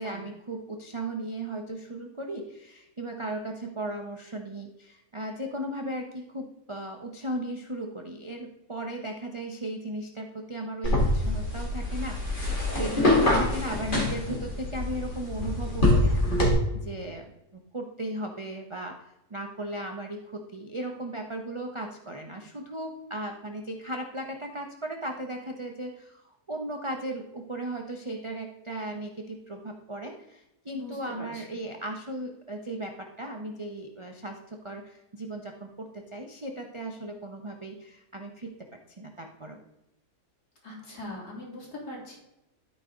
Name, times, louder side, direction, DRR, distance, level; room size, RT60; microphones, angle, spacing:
voice 1, 0.0-38.6 38.9-39.6, right 1 dB, 30° right, 2 dB, 0.5 m, -37 dB
sound 1, 10.8-16.5, left 1 dB, 30° left, 2.4 m, -25 dB
voice 2, 30.7-31.4 40.6-42.2, left 1 dB, 70° left, -5 dB, 3.6 m, -41 dB
12.0 x 4.8 x 3.8 m, 0.89 s
omnidirectional pair, 1.7 m